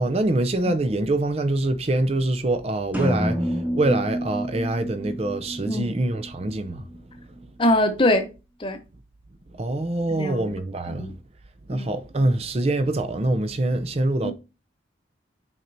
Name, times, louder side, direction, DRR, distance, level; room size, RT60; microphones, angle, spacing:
voice 1, 0.0-7.0 9.5-11.1 11.7-14.3, right 2 dB, 35° right, 0.5 m, -24 dB
sound 1, 2.9-6.7, equal, 10° right, 1.2 m, -29 dB
voice 2, 7.6-8.3 8.6-8.8 10.1-10.4 10.9-11.1 11.7-11.9 14.2-14.3, left 1 dB, 25° left, 0.8 m, -22 dB
9.6 x 4.4 x 2.6 m
head